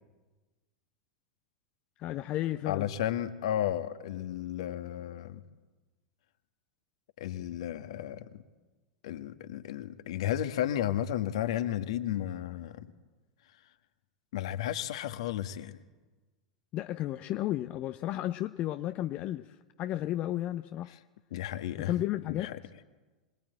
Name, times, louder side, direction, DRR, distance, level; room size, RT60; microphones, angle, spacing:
voice 1, 2.0-2.9 16.7-20.9 21.8-22.5, left 14 dB, 35° left, 11 dB, 0.8 m, -33 dB
voice 2, 2.7-5.4 7.2-8.4 9.0-12.9 14.3-15.8 21.3-21.9 22.3-22.6, left 11 dB, 55° left, 10 dB, 1.7 m, -33 dB
26.0 x 21.5 x 9.1 m, 1.3 s
figure-of-eight pair, 90°, 4 cm